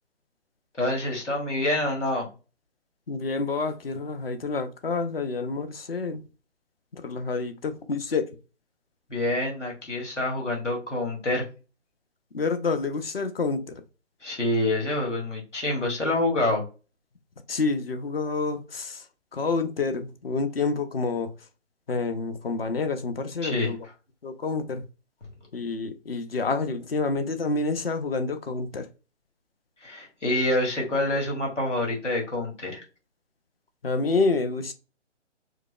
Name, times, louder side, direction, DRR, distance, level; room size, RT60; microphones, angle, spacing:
voice 1, 0.8-2.3 9.1-11.4 14.2-16.6 23.4-23.7 29.8-32.8, left 1 dB, 75° left, 1.7 m, -27 dB
voice 2, 3.1-6.2 6.9-8.3 12.3-13.8 17.5-19.0 19.3-21.3 21.9-23.8 24.2-24.8 25.5-28.9 33.8-34.7, left 3 dB, 55° left, 0.7 m, -28 dB
4.7 x 2.0 x 2.3 m
figure-of-eight pair, 145°, 36 cm